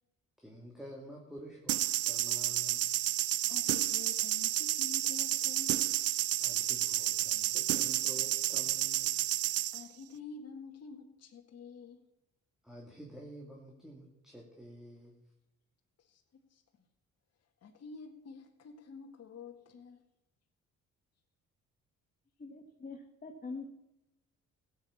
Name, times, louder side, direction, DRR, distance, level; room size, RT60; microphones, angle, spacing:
voice 1, 0.4-2.9 6.4-9.2 12.6-15.1, equal, ahead, -1 dB, 2.7 m, -49 dB
sound 1, 1.7-9.8, right 14 dB, 55° right, 0.4 m, -31 dB
voice 2, 3.2-5.9 9.7-12.0 16.0-16.2 16.5-16.6 17.6-20.0, left 5 dB, 55° left, 3 dB, 1.8 m, -48 dB
voice 3, 22.4-23.7, left 3 dB, 30° left, 4 dB, 1.6 m, -44 dB
16.0 x 8.3 x 7.2 m, 0.90 s
cardioid pair, 90°, 30 cm